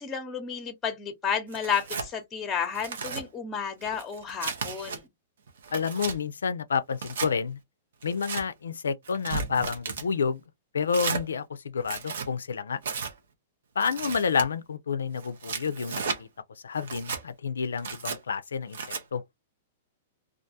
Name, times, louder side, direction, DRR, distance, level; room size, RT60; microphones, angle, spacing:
voice 1, 0.0-5.1, left 7 dB, 20° left, 0.7 m, -32 dB
Tearing, 1.5-2.1 2.6-3.2 3.8-5.0 5.5-6.2 6.9-7.3 8.0-8.4 9.0-10.1 10.9-11.2 11.8-12.3 12.8-13.1 13.8-14.5 15.2-16.2 16.8-17.2 17.8-18.2 18.7-19.0, right 5 dB, 75° right, 0.7 m, -34 dB
voice 2, 5.7-7.6 8.0-10.4 10.7-12.8 13.8-16.3 16.6-18.8 19.1-19.2, left 6 dB, 85° left, 0.3 m, -29 dB
2.4 x 2.2 x 2.6 m
hypercardioid pair, 120°, 0 cm